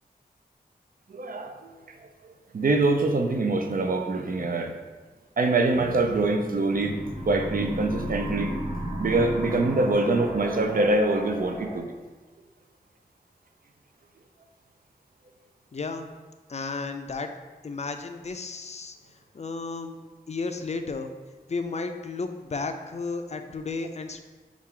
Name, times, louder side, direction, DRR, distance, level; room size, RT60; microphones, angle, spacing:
voice 1, 1.1-1.5 2.5-4.7 5.4-8.5 9.0-11.9, right 2 dB, 60° right, 5 dB, 0.5 m, -24 dB
sound 1, 6.7-11.8, right 1 dB, 20° right, 1.2 m, -34 dB
voice 2, 15.7-16.1 16.5-17.3 17.6-19.0 19.3-20.0 20.3-21.1 21.5-24.2, left 4 dB, 40° left, 7 dB, 0.4 m, -33 dB
5.6 x 2.4 x 3.7 m, 1.3 s
wide cardioid pair, 55°, 17 cm